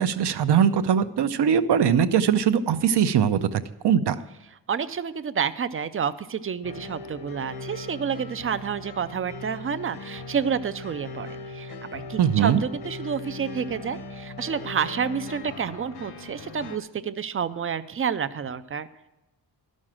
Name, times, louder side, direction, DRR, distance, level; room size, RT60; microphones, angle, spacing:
voice 1, 0.0-4.2 12.2-12.6, right 8 dB, 70° right, 11 dB, 0.7 m, -21 dB
voice 2, 4.7-18.9, right 7 dB, 35° right, 12 dB, 0.4 m, -29 dB
sound 1, 6.6-16.8, left 3 dB, 65° left, 1.0 m, -39 dB
12.0 x 6.4 x 7.4 m, 1.0 s
wide cardioid pair, 175°, 42 cm